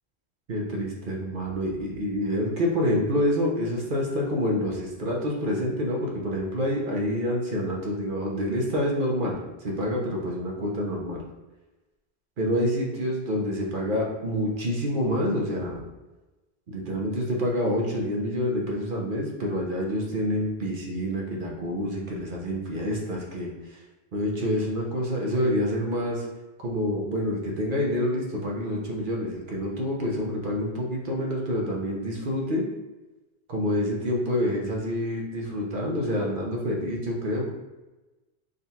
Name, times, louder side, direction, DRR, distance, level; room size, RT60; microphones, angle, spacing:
voice 1, 0.5-11.2 12.4-15.8 16.7-23.8 24.1-26.3 26.6-32.6 33.5-37.5, equal, 50° right, -1 dB, 0.9 m, -27 dB
3.8 x 2.3 x 4.1 m, 1.1 s
omnidirectional pair, 1.1 m